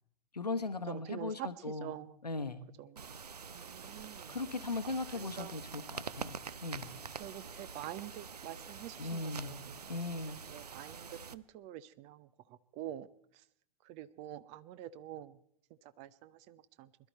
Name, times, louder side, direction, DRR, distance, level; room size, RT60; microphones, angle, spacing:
voice 1, 0.3-1.9 2.2-2.6 4.3-6.9 9.0-10.4, left 3 dB, 85° left, 12 dB, 1.1 m, -38 dB
voice 2, 0.9-2.2 2.8-3.1 3.5-4.4 4.8-5.6 7.2-9.8 10.5-13.1 13.8-15.4 15.8-16.9, right 12 dB, 35° right, 16 dB, 0.7 m, -46 dB
sound 1, 3.0-11.3, right 6 dB, 80° right, 0.6 m, -46 dB
21.5 x 12.0 x 4.4 m, 0.69 s
figure-of-eight pair, 95°, 20 cm